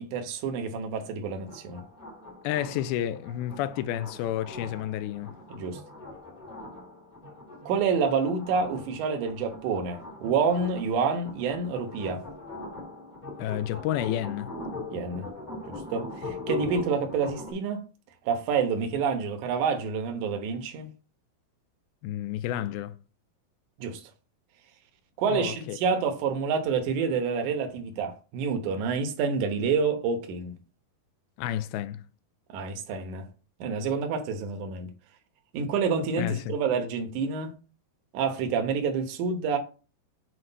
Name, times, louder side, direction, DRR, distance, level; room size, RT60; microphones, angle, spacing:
voice 1, 0.0-1.8 5.5-5.8 7.7-12.2 14.9-15.3 15.7-17.8 18.3-20.9 23.8-24.0 25.2-30.6 32.5-33.3 33.6-34.9 35.5-37.5 38.1-39.6, right 5 dB, 70° right, 2.0 m, -28 dB
sound 1, 1.5-17.5, left 1 dB, 20° left, 1.1 m, -41 dB
voice 2, 2.4-5.3 13.4-14.5 22.0-23.0 25.3-25.8 31.4-32.0 36.2-36.5, left 12 dB, 80° left, 2.3 m, -30 dB
7.8 x 3.2 x 5.4 m
omnidirectional pair, 4.7 m